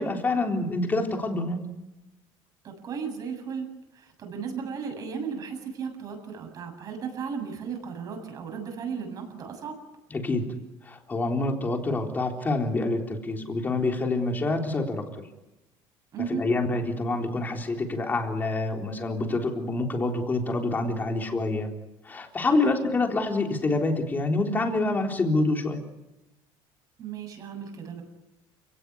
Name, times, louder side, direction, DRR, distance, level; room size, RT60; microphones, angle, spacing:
voice 1, 0.0-1.6 10.1-10.5 10.8-15.3 16.3-21.7 22.0-25.8, left 2 dB, 15° left, 2 dB, 3.9 m, -27 dB
voice 2, 2.6-3.7 3.9-9.8 16.1-16.5 22.5-22.9 27.0-28.0, right 6 dB, 35° right, 4 dB, 7.6 m, -35 dB
30.0 x 18.0 x 9.8 m, 0.99 s
cardioid pair, 160°, 11 cm